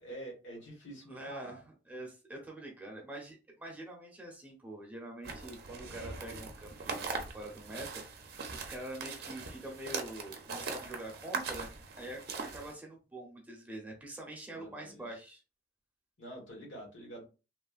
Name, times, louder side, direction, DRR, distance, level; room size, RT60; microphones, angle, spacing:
voice 1, 0.0-1.6 14.5-15.0 16.2-17.2, right 1 dB, 80° left, -1 dB, 1.3 m, -47 dB
voice 2, 1.1-8.0 8.5-15.4, right 1 dB, 10° right, -1 dB, 0.7 m, -45 dB
sound 1, 5.2-12.7, right 4 dB, 55° right, 0.5 m, -41 dB
3.1 x 2.2 x 2.3 m, 0.31 s
head